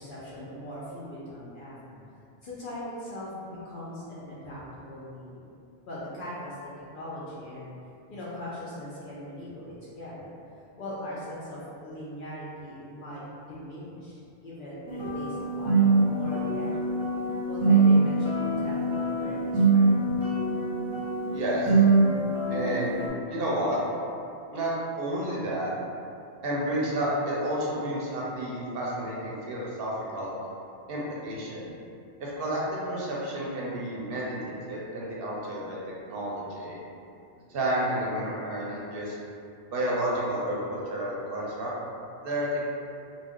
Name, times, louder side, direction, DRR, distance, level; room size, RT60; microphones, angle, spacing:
voice 1, 0.0-2.0 2.4-5.5 5.9-7.7 8.1-10.3 10.8-16.9 17.5-19.9, left 1 dB, 60° left, -8 dB, 0.6 m, -40 dB
sound 1, 14.9-23.1, right 3 dB, 5° right, 0.8 m, -24 dB
voice 2, 21.3-21.8 22.5-23.0 23.3-23.8 24.5-25.7 26.4-30.3 30.9-31.7 32.2-35.8 36.1-36.8 37.5-39.2 39.7-41.7 42.2-42.6, right 1 dB, 65° right, -5 dB, 0.7 m, -31 dB
2.4 x 2.1 x 3.4 m, 2.6 s
omnidirectional pair, 1.1 m